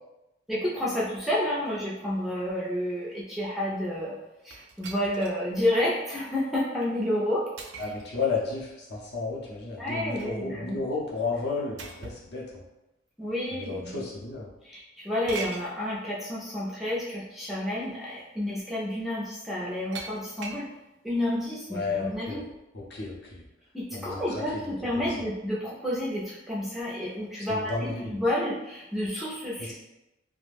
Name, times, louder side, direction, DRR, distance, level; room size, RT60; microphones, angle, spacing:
voice 1, 0.5-4.2 4.4-7.5 9.8-10.8 13.2-14.0 14.6-20.7 21.0-22.5 23.7-29.7, left 1 dB, ahead, -7 dB, 0.4 m, -30 dB
sound 1, 4.5-5.4 6.0-6.1 7.6-8.1 9.7-10.4 11.8-12.3 13.3-13.4 15.3-15.7 17.1-17.2 17.7-18.0 19.9-20.7, right 4 dB, 70° right, 0.4 m, -41 dB
voice 2, 7.8-12.6 13.5-14.5 21.7-22.4 22.7-23.4 23.9-24.4 24.9-25.1 27.4-28.1 29.6-29.7, left 4 dB, 55° left, -3 dB, 0.6 m, -32 dB
2.4 x 2.0 x 3.3 m, 0.96 s
head